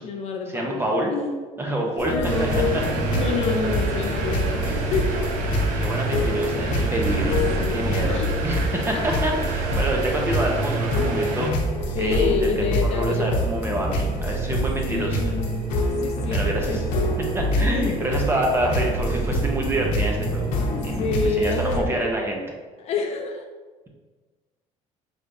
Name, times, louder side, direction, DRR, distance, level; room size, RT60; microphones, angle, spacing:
voice 1, 0.0-1.3 2.1-2.7 3.1-5.5 7.6-8.4 11.9-13.4 14.9-15.7 16.0-17.1 17.5-18.0 19.5-19.6 20.7-22.1 22.8-23.5, left 4 dB, 50° left, 3 dB, 0.5 m, -28 dB
voice 2, 0.5-1.1 1.6-2.1 2.4-2.5 5.8-7.4 7.7-11.5 12.0-15.3 16.3-16.8 17.3-20.5 20.8-22.4, right 1 dB, 20° right, 0 dB, 0.7 m, -27 dB
sound 1, 2.0-21.8, equal, 90° left, 0.8 m, -26 dB
sound 2, 2.3-11.5, right 2 dB, 80° right, 0.7 m, -30 dB
sound 3, 2.5-21.3, equal, 45° right, 1.1 m, -34 dB
5.0 x 3.3 x 2.6 m, 1.3 s
cardioid pair, 145°, 13 cm